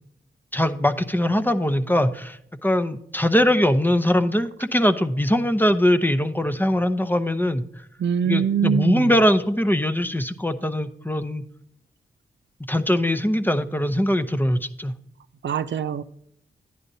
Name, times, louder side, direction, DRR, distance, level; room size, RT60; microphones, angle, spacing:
voice 1, 0.5-7.6 8.3-11.4 12.7-14.9, left 1 dB, 10° left, 9 dB, 0.7 m, -21 dB
voice 2, 8.0-9.1 15.4-16.0, right 8 dB, 70° right, 12 dB, 0.5 m, -23 dB
10.5 x 10.0 x 2.7 m, 0.73 s
cardioid pair, 55°, 20 cm